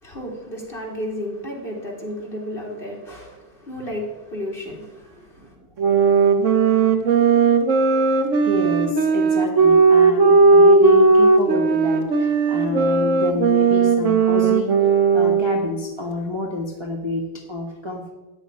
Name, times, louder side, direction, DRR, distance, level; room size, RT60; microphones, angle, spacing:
voice 1, 0.0-5.5, equal, 30° left, -2 dB, 3.0 m, -33 dB
sound 1, 5.8-15.8, right 4 dB, 50° right, 1.1 m, -16 dB
voice 2, 6.4-7.3 8.4-18.1, left 2 dB, 15° right, -1 dB, 1.3 m, -28 dB
13.0 x 5.9 x 9.7 m, 1.1 s
omnidirectional pair, 2.0 m